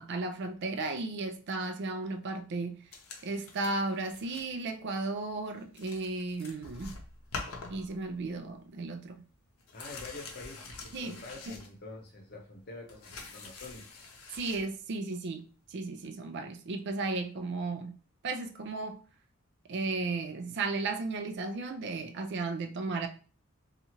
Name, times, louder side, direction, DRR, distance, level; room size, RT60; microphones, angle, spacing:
voice 1, 0.0-2.8 3.2-7.0 7.7-9.2 10.9-11.2 11.5-11.6 14.3-17.9 18.2-19.0 19.7-23.1, right 3 dB, 55° right, 0.4 m, -35 dB
sound 1, 2.9-4.5 4.9-5.1 5.4-5.5 5.7-8.4 8.7-8.8 9.0-12.2 12.5-14.7 15.7-15.8, left 3 dB, 85° left, 0.6 m, -46 dB
voice 2, 9.7-14.0, left 3 dB, 50° left, 0.7 m, -47 dB
2.8 x 2.4 x 2.9 m
head